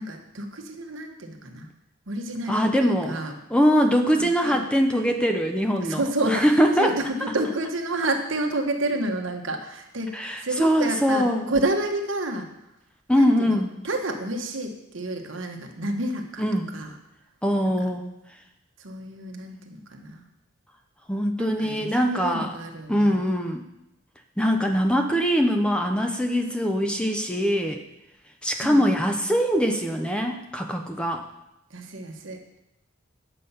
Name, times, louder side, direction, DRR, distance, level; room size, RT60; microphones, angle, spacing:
voice 1, 0.0-1.7 2.1-3.3 4.2-4.6 5.8-6.5 6.8-12.5 13.1-16.4 16.7-16.9 17.8-17.9 18.8-20.2 21.4-23.2 28.6-28.9 31.7-32.4, right 1 dB, 65° right, 4 dB, 1.3 m, -30 dB
voice 2, 2.5-3.2 3.5-6.0 6.3-7.0 10.1-11.5 13.1-13.7 16.4-16.7 17.4-18.0 21.1-22.6 22.9-23.6 24.4-27.8 28.4-31.2, equal, 5° left, 4 dB, 0.6 m, -22 dB
9.7 x 6.9 x 5.6 m, 0.89 s
head